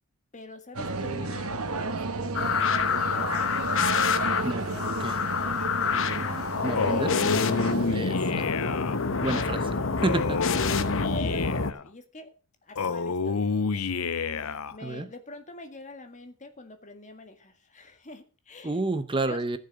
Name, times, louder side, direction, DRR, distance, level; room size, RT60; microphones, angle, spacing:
voice 1, 0.3-3.5 4.7-5.6 5.9-7.1 7.9-9.4 10.3-12.3 12.6-13.8 14.4-18.8 19.3-19.6, left 2 dB, 35° left, 7 dB, 1.9 m, -44 dB
sound 1, 0.7-8.0, right 3 dB, 85° right, 1.4 m, -32 dB
sound 2, 2.3-11.7, left 5 dB, 65° left, 1.0 m, -27 dB
voice 2, 6.6-7.1 7.9-8.5 9.2-9.7 10.0-10.7 14.8-15.1 18.6-19.6, right 2 dB, 25° right, 12 dB, 0.7 m, -30 dB
Male speech man speaking, 6.8-9.0 10.0-11.8 12.8-14.8, left 4 dB, 90° left, 0.7 m, -29 dB
15.0 x 6.6 x 6.5 m, 0.36 s
head